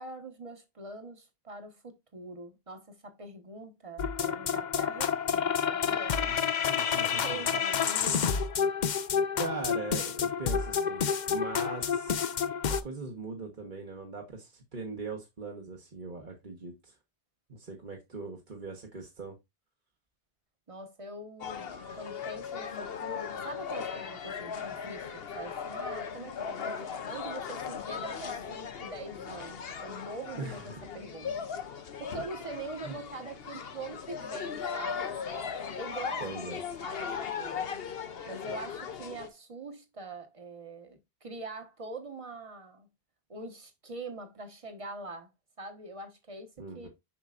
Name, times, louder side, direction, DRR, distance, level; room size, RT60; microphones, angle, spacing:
voice 1, 0.0-6.2 7.0-8.5 20.7-21.7 21.9-31.5 32.0-35.1 35.8-37.1 37.4-37.7 38.2-42.9 43.3-45.3 45.6-46.9, right 2 dB, 30° right, 1.3 m, -43 dB
sound 1, 4.0-12.8, left 7 dB, 50° left, 0.7 m, -29 dB
voice 2, 6.7-7.5 9.3-12.2 12.7-16.9 17.5-19.3 30.3-30.9 32.8-33.0 36.2-36.6 46.6-46.9, right 3 dB, 50° right, 1.4 m, -40 dB
sound 2, 21.4-39.3, left 6 dB, 70° left, 1.1 m, -38 dB
7.4 x 5.5 x 2.5 m
omnidirectional pair, 1.1 m